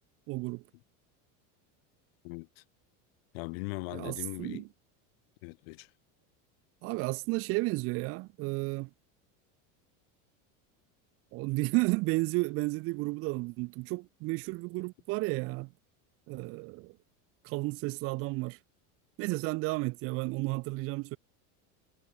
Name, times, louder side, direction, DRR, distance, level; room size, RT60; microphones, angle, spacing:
voice 1, 0.3-0.6 3.9-4.7 6.8-8.9 11.3-15.7 16.3-17.0 17.4-18.6 19.2-21.2, right 24 dB, 35° right, 0.8 m, -32 dB
voice 2, 2.2-2.6 3.3-4.6 5.4-5.9, left 28 dB, 55° left, 0.4 m, -40 dB
cardioid pair, 180°, 38 cm